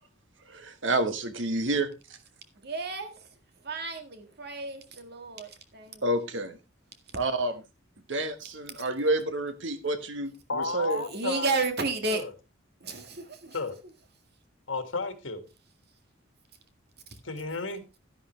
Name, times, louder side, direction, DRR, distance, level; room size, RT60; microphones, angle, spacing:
voice 1, 0.5-1.9 6.0-6.6 7.1-7.6 8.1-11.0, right 2 dB, 75° right, 1.4 m, -29 dB
voice 2, 2.6-3.1 3.6-6.0 11.1-12.2 12.8-13.6, right 3 dB, 55° right, 1.9 m, -32 dB
voice 3, 10.5-11.6 12.1-12.3 13.5-13.8 14.7-15.4 17.2-17.8, left 3 dB, 85° left, 2.0 m, -32 dB
11.5 x 11.0 x 3.3 m
head